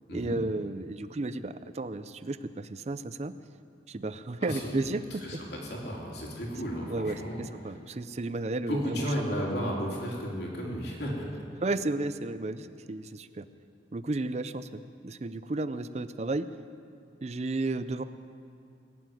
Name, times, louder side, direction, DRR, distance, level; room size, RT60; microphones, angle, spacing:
voice 1, 0.1-3.3 3.9-5.4 6.9-7.2 7.6-9.1 11.6-13.4 13.9-16.5 17.2-18.0, right 2 dB, 35° right, 12 dB, 0.5 m, -33 dB
voice 2, 4.4-4.8 5.2-7.4 8.7-11.3, equal, 60° left, -2 dB, 3.3 m, -33 dB
20.0 x 7.5 x 9.2 m, 2.4 s
head